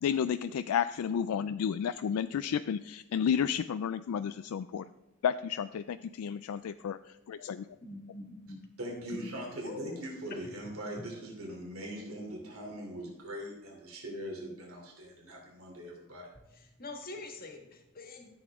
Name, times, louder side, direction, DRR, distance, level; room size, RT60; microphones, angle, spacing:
voice 1, 0.0-4.9 5.2-7.6, left 8 dB, 75° left, 12 dB, 0.3 m, -32 dB
voice 2, 7.8-8.6 9.1-9.2 9.6-10.1 16.5-18.3, left 2 dB, 45° left, 3 dB, 1.7 m, -45 dB
voice 3, 8.8-16.3, equal, 70° right, -1 dB, 3.0 m, -41 dB
13.5 x 7.9 x 3.6 m, 0.99 s
head